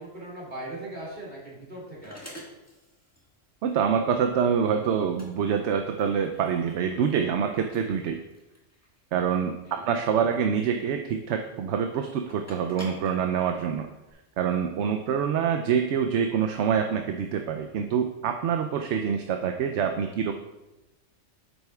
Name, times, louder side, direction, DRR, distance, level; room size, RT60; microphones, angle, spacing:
voice 1, 0.0-2.4 9.7-9.8, right 1 dB, 45° right, -5 dB, 2.8 m, -39 dB
sound 1, 1.2-14.1, equal, 10° left, 1.5 m, -50 dB
voice 2, 3.6-8.2 9.1-13.9 14.4-20.3, right 7 dB, 70° right, 5 dB, 0.8 m, -26 dB
9.7 x 7.9 x 2.3 m, 0.99 s
omnidirectional pair, 1.3 m